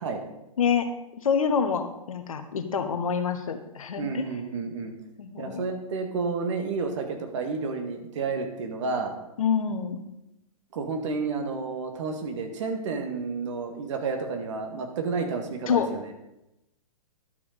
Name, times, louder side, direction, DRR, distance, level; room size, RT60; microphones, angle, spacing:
voice 1, 1.2-4.2 5.2-5.6 9.4-10.0 15.7-15.9, left 7 dB, 65° left, 8 dB, 1.3 m, -26 dB
voice 2, 4.0-4.9 5.4-9.1 10.7-16.1, right 4 dB, 55° right, 5 dB, 2.0 m, -31 dB
11.5 x 6.8 x 5.1 m, 0.89 s
figure-of-eight pair, 120°, 19 cm